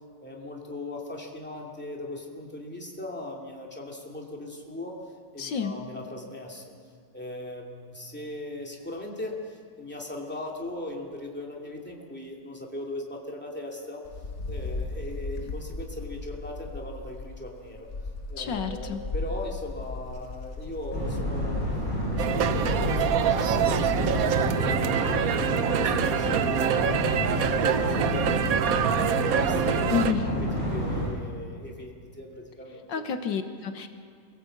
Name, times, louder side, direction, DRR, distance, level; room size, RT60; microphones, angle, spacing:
voice 1, 0.2-5.0 5.3-6.6 7.1-14.0 14.5-17.9 18.3-21.6 22.1-25.4 25.8-30.3 30.6-33.0, left 1 dB, 5° left, -1 dB, 2.5 m, -38 dB
voice 2, 5.4-5.8 18.4-19.0 29.9-30.3 32.9-33.9, left 6 dB, 80° left, 7 dB, 1.8 m, -29 dB
Wind, 14.0-24.1, left 3 dB, 40° left, 1.6 m, -36 dB
sound 1, 20.9-31.0, equal, 75° right, 8.9 m, -29 dB
sound 2, 22.2-30.1, right 9 dB, 60° right, 1.1 m, -26 dB
23.0 x 17.5 x 7.9 m, 2.1 s
omnidirectional pair, 2.0 m